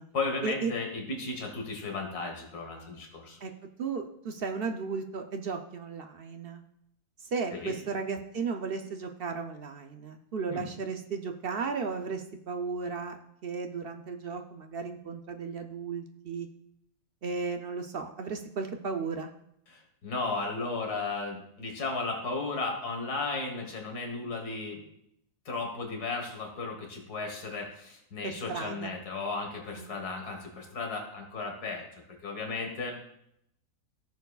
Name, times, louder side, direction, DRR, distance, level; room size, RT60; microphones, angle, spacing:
voice 1, 0.1-3.4 7.5-7.7 10.5-10.7 19.7-24.8 25.5-31.9 32.2-33.0, left 3 dB, 85° left, 2 dB, 2.0 m, -35 dB
voice 2, 3.8-6.6 7.2-16.5 17.2-19.3 28.2-28.9 29.8-29.9, right 5 dB, 55° right, 5 dB, 0.6 m, -35 dB
15.0 x 6.8 x 2.4 m, 0.76 s
omnidirectional pair, 1.6 m